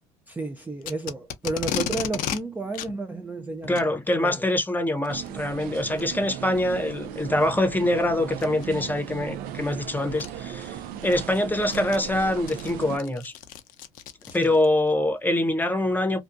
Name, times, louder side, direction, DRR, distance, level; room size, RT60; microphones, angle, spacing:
voice 1, 0.3-3.8 4.2-4.4 14.4-14.6, right 3 dB, 10° right, 0.4 m, -32 dB
Packing tape duct tape, 0.8-2.4 2.7-2.9 3.6-3.9 5.0-5.3 6.0-6.1 6.7-6.8 8.4-8.7 9.7-9.8 10.2-10.3 10.8-14.7, left 10 dB, 65° left, 0.5 m, -34 dB
voice 2, 3.7-13.3 14.3-16.2, left 1 dB, 10° left, 0.8 m, -24 dB
sound 1, 5.1-13.0, right 10 dB, 75° right, 0.4 m, -37 dB
2.4 x 2.3 x 2.5 m
supercardioid pair, 80°, 15 cm